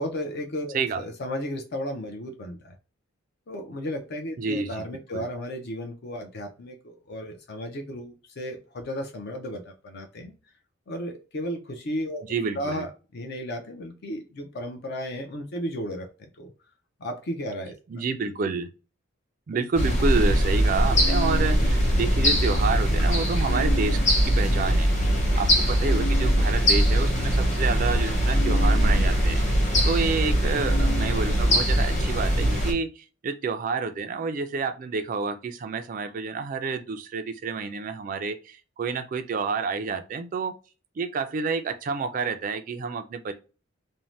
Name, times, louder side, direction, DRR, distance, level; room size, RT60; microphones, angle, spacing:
voice 1, 0.0-2.8 3.5-10.3 10.9-12.2 12.6-16.1 16.3-16.5 17.0-17.7 24.9-25.2, equal, 50° left, 0.5 m, -34 dB
voice 2, 4.4-4.9 5.1-5.3 12.3-12.9 17.9-18.7 19.5-24.9 25.3-29.4 29.8-40.5 41.0-43.3, right 4 dB, 40° right, 0.3 m, -29 dB
sound 1, 19.8-32.7, equal, 35° left, 1.0 m, -22 dB
2.6 x 2.1 x 3.0 m
head